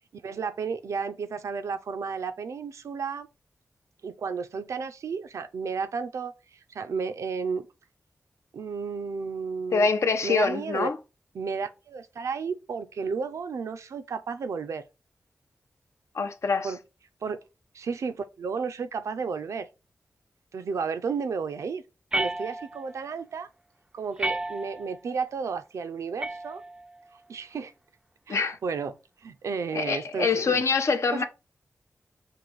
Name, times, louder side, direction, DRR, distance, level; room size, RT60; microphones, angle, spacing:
voice 1, 0.1-3.3 4.0-7.7 8.5-9.9 10.2-10.9 11.3-14.8 16.6-16.8 17.2-17.4 17.7-19.7 20.5-21.8 22.1-23.5 23.9-26.6 27.3-27.7 28.3-29.0 29.2-30.6 31.1-31.2, right 5 dB, 90° right, 0.5 m, -32 dB
voice 2, 9.7-11.0 16.1-16.7 28.3-28.6 29.7-31.2, left 4 dB, 70° left, 0.6 m, -25 dB
sound 1, 22.1-23.0 24.2-25.0 26.2-27.0, right 2 dB, 15° right, 0.3 m, -32 dB
4.7 x 2.6 x 3.8 m
wide cardioid pair, 75°, 5 cm